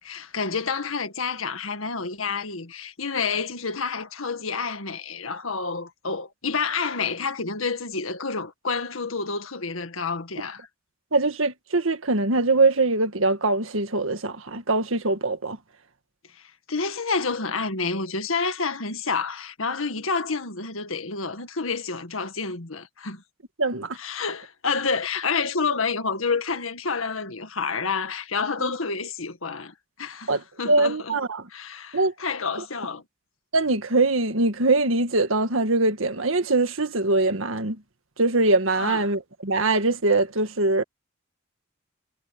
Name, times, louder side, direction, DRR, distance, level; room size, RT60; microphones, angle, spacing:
voice 1, 0.0-10.7 16.3-23.2 23.9-31.2 31.5-33.0 38.7-39.0, left 4 dB, 90° left, 1.9 m, -29 dB
voice 2, 11.1-15.6 23.6-24.0 28.6-28.8 30.3-31.5 31.9-32.1 33.5-37.8 38.2-40.8, right 2 dB, 80° right, 1.8 m, -22 dB
head